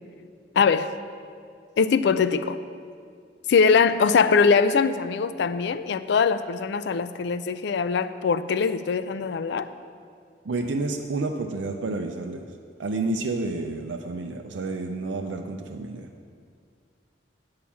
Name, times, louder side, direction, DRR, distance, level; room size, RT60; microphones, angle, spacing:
voice 1, 0.6-0.9 1.8-2.6 3.5-9.7, left 5 dB, 65° left, 13 dB, 0.4 m, -22 dB
voice 2, 10.5-12.4 12.8-16.1, right 3 dB, 90° right, 3 dB, 0.5 m, -30 dB
8.6 x 4.8 x 7.1 m, 2.2 s
head